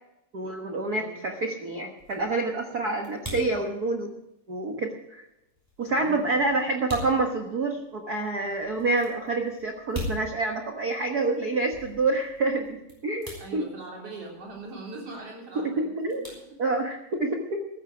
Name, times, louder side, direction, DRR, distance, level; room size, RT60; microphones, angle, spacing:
voice 1, 0.3-4.1 4.5-5.3 5.8-13.6 15.6-16.3 16.6-17.7, right 2 dB, 75° right, 3 dB, 0.8 m, -28 dB
sound 1, 0.7-17.2, left 1 dB, 5° right, 5.9 m, -44 dB
voice 2, 1.0-1.3 5.9-6.7 13.4-15.9 16.5-16.6, right 3 dB, 45° right, -1 dB, 4.4 m, -41 dB
14.5 x 14.0 x 5.1 m, 0.88 s
omnidirectional pair, 3.9 m